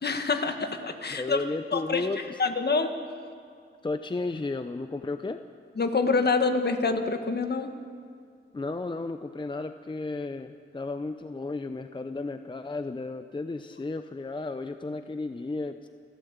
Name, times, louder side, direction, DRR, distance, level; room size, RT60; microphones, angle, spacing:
voice 1, 0.0-1.4 1.7-3.0 5.8-7.7, left 4 dB, 50° left, 7 dB, 1.6 m, -26 dB
voice 2, 1.1-2.4 3.8-5.4 8.5-15.9, left 3 dB, 20° left, 9 dB, 0.7 m, -33 dB
28.5 x 12.0 x 8.1 m, 2.2 s
wide cardioid pair, 95°, 21 cm